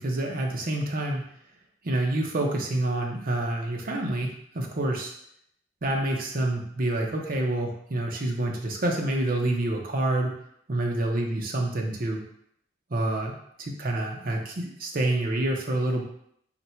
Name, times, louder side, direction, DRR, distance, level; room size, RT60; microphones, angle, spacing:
voice 1, 0.0-1.3 1.8-5.1 5.8-10.4 10.7-12.2 12.9-16.0, right 1 dB, 50° right, 1 dB, 0.7 m, -27 dB
4.1 x 2.2 x 4.3 m, 0.70 s
head